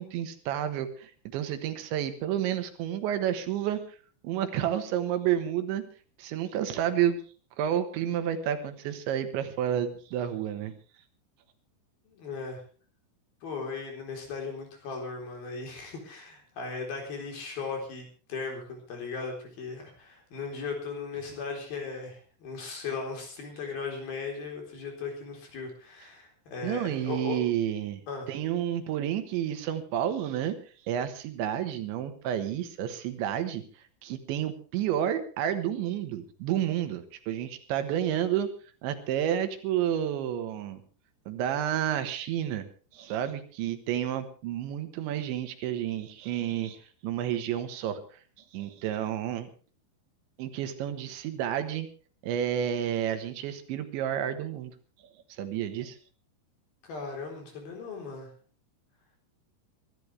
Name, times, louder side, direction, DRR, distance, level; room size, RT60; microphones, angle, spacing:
voice 1, 0.0-4.0 4.2-5.8 6.2-7.2 7.6-10.7 26.6-28.0 28.3-30.6 30.8-38.5 38.8-40.8 41.3-42.7 42.9-48.2 48.5-49.5 50.4-51.9 52.2-54.7 55.3-56.0, right 10 dB, 80° right, 9 dB, 3.6 m, -30 dB
voice 2, 12.1-12.6 13.4-27.4 28.1-28.3 56.8-58.3, left 4 dB, 55° left, 2 dB, 5.7 m, -37 dB
23.5 x 12.5 x 3.4 m, 0.39 s
omnidirectional pair, 5.3 m